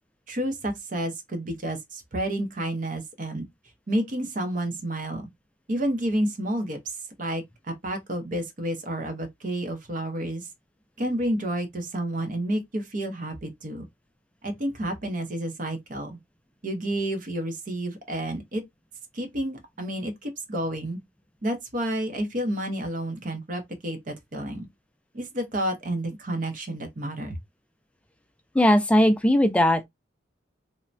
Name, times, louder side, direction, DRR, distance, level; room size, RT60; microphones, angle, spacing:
voice 1, 0.3-3.4 3.9-5.3 5.7-7.4 7.8-10.5 11.0-13.9 14.4-16.2 16.6-18.6 19.1-21.0 21.4-24.7 25.1-27.4, right 1 dB, 45° right, 0.6 m, -30 dB
voice 2, 28.5-29.8, left 1 dB, 5° left, 0.3 m, -19 dB
3.2 x 2.1 x 2.5 m
head